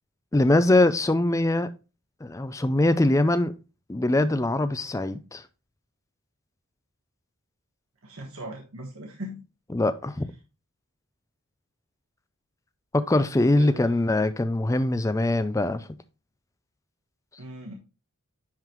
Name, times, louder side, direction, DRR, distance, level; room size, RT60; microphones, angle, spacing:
voice 1, 0.3-1.7 2.2-3.6 3.9-5.4 9.7-10.3 12.9-15.9, left 2 dB, 15° left, 0.4 m, -22 dB
voice 2, 8.0-9.4 13.6-14.0 17.4-17.7, right 1 dB, 70° right, 1.3 m, -39 dB
10.5 x 3.9 x 3.0 m
head